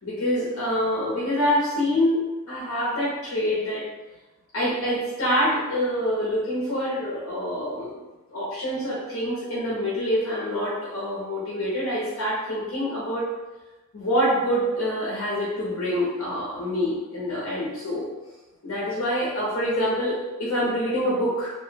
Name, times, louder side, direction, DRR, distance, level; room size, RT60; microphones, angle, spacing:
voice 1, 0.0-3.8 4.5-7.9 8.3-13.2 13.9-18.0 18.6-21.5, equal, 75° left, -8 dB, 0.9 m, -26 dB
3.0 x 2.2 x 3.2 m, 1.1 s
head